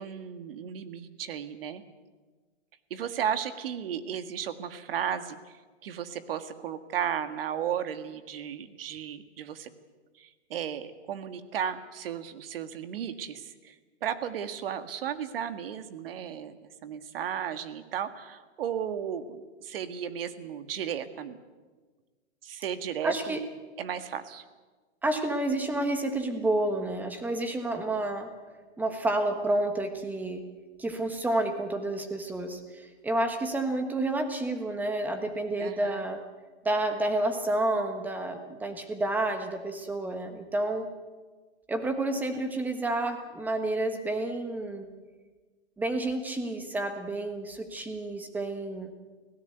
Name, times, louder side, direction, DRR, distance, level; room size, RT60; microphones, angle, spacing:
voice 1, 0.0-1.8 2.9-5.4 5.8-9.7 10.2-13.7 14.0-21.4 22.4-23.4 23.8-24.4 35.6-36.0, right 9 dB, 55° right, 10 dB, 1.8 m, -34 dB
voice 2, 23.0-23.4 25.0-28.3 28.8-30.4 30.8-36.2 36.6-40.9 41.7-44.9 45.8-48.9, right 2 dB, 5° right, 6 dB, 1.3 m, -30 dB
24.0 x 17.0 x 8.0 m, 1.4 s
hypercardioid pair, 160°, 35 cm